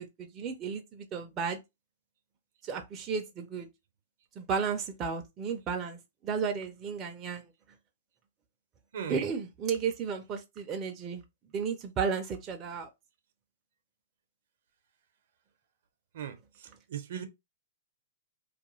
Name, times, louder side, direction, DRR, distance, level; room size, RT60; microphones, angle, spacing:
voice 1, 0.0-1.6 2.6-3.7 4.4-7.5 9.1-11.2 11.5-12.9, right 6 dB, 25° right, 0.4 m, -33 dB
voice 2, 16.9-17.2, right 9 dB, 65° right, 0.6 m, -37 dB
2.3 x 2.2 x 3.0 m
hypercardioid pair, 135°, 0 cm